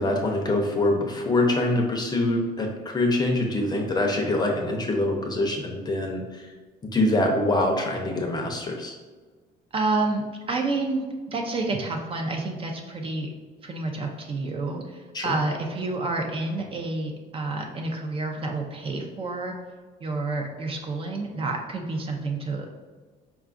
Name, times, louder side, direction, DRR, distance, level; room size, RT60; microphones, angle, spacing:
voice 1, 0.0-6.5 6.9-8.9 15.1-15.4, left 1 dB, 25° left, 1 dB, 0.5 m, -24 dB
voice 2, 9.7-13.3 13.6-19.5 20.0-22.8, right 3 dB, 35° right, 2 dB, 0.4 m, -29 dB
4.6 x 2.3 x 2.4 m, 1.4 s
cardioid pair, 110°, 17 cm